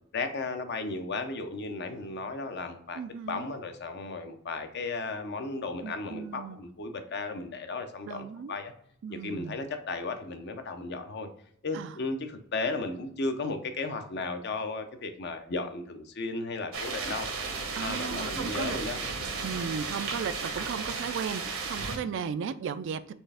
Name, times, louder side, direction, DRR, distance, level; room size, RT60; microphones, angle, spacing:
voice 1, 0.1-3.0 3.3-8.7 9.1-11.3 11.6-17.3 17.8-19.0, left 3 dB, 55° left, 7 dB, 0.6 m, -35 dB
voice 2, 2.9-3.5 5.8-6.6 8.1-8.6 9.0-9.6 11.7-12.0 17.7-18.8 19.4-23.1, right 6 dB, 60° right, 13 dB, 0.3 m, -36 dB
sound 1, 16.7-22.0, right 4 dB, 80° right, 1.0 m, -34 dB
4.4 x 3.3 x 3.3 m, 0.67 s
head